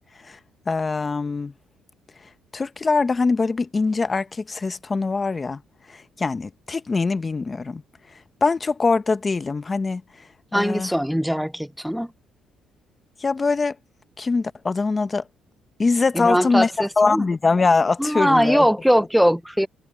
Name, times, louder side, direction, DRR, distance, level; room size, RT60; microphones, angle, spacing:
voice 1, 0.7-1.5 2.5-5.6 6.2-7.8 8.4-10.0 10.5-10.9 13.2-13.7 14.2-15.2 15.8-18.7, left 4 dB, 25° left, 0.8 m, -22 dB
voice 2, 10.5-12.1 16.1-17.3 18.0-19.7, equal, ahead, 0.4 m, -21 dB
cardioid pair, 120°, 0 cm